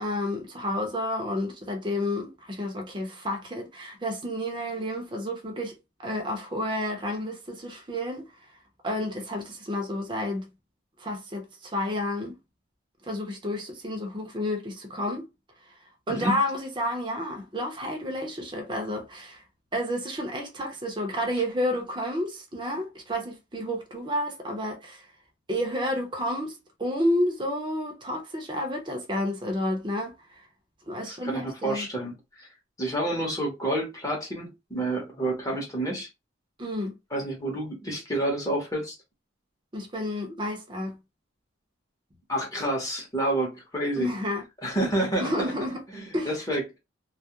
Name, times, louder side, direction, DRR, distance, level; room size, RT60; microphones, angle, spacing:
voice 1, 0.0-5.8 6.0-8.3 8.8-10.5 11.0-12.4 13.1-15.3 16.1-19.4 19.7-25.0 25.5-30.1 30.9-31.9 36.6-37.0 39.7-41.0 44.0-44.4 45.2-45.8 46.1-46.3, left 1 dB, 20° right, 0.6 m, -30 dB
voice 2, 16.1-16.4 31.1-32.5 32.8-36.1 37.1-38.9 42.3-44.1 44.6-45.5 45.9-46.8, right 1 dB, 15° left, 0.8 m, -29 dB
2.3 x 2.0 x 2.8 m
head